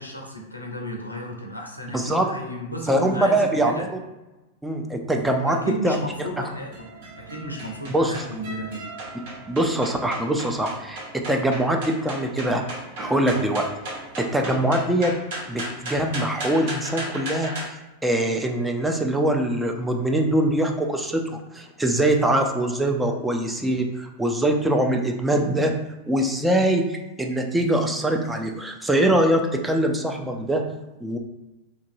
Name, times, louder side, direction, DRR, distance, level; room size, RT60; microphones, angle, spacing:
voice 1, 0.0-3.8 5.3-6.7 7.2-8.8, equal, 85° left, -1 dB, 0.6 m, -34 dB
voice 2, 1.9-2.3 2.9-3.9 4.6-5.6 5.8-6.3 7.9-8.1 9.5-12.6 13.0-15.1 15.5-25.8 26.1-30.6 31.0-31.2, right 1 dB, 5° right, 3 dB, 0.4 m, -23 dB
sound 1, 5.9-17.7, right 1 dB, 55° right, 0.8 m, -36 dB
2.9 x 2.6 x 2.6 m, 1.0 s
figure-of-eight pair, 90°, 0 cm